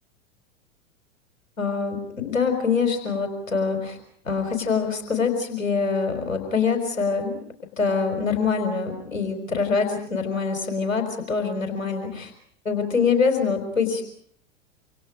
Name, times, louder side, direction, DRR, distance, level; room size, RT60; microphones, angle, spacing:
voice 1, 1.6-4.0 4.2-7.4 7.8-12.3 12.6-14.0, left 5 dB, 90° left, 5 dB, 4.5 m, -24 dB
28.0 x 27.0 x 5.0 m, 0.69 s
figure-of-eight pair, 95°, 38 cm